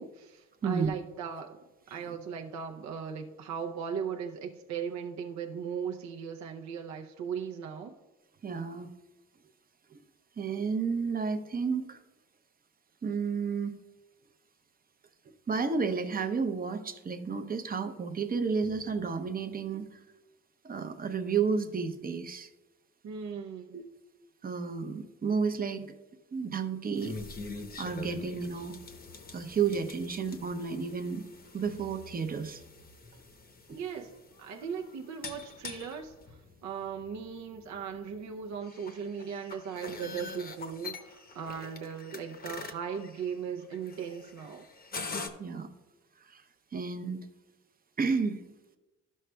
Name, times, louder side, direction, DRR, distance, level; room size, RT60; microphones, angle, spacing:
voice 1, 0.0-1.6 1.9-7.9 23.0-23.8 33.7-44.7, right 7 dB, 65° right, 2 dB, 0.6 m, -38 dB
voice 2, 8.4-8.9 9.9-10.0 10.4-12.0 13.0-13.7 15.5-20.0 20.6-22.5 23.7-23.8 24.4-25.9 26.3-27.2 27.8-28.8 29.3-31.3 31.5-32.6 33.7-33.8 45.4-45.7 46.3-46.4 46.7-47.2 48.0-48.4, right 5 dB, 30° right, 8 dB, 0.7 m, -31 dB
sound 1, 26.9-45.3, left 4 dB, 30° left, 0.8 m, -45 dB
12.0 x 6.4 x 2.2 m, 1.1 s
cardioid pair, 90°, 30 cm